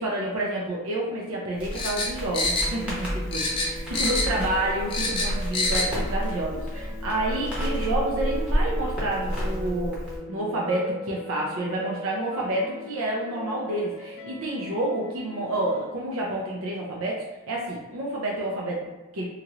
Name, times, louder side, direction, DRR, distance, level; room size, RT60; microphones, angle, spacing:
voice 1, 0.0-10.0 10.3-17.2 17.5-19.3, right 1 dB, 75° right, -3 dB, 0.5 m, -29 dB
Crackle, 1.6-10.2, equal, 5° right, 0.8 m, -30 dB
sound 1, 1.7-3.0 3.3-4.4 4.7-5.9 6.2-6.3, left 2 dB, 25° left, 0.4 m, -26 dB
sound 2, 2.6-15.8, equal, 60° left, 0.6 m, -40 dB
2.9 x 2.5 x 2.9 m, 1.1 s
head